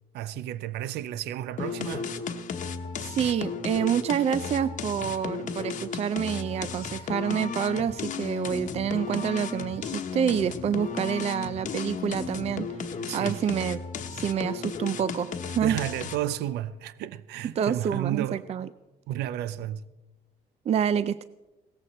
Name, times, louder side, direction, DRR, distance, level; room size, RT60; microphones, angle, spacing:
voice 1, 0.1-2.1 12.9-13.4 15.6-18.5 19.1-19.9, right 12 dB, 80° right, 0.6 m, -32 dB
sound 1, 1.6-16.4, left 5 dB, 50° left, 1.1 m, -34 dB
voice 2, 3.0-12.8 13.1-13.8 14.1-15.8 17.6-18.7 20.7-21.2, right 8 dB, 40° right, 0.4 m, -27 dB
17.5 x 14.0 x 4.2 m
cardioid pair, 110°, 17 cm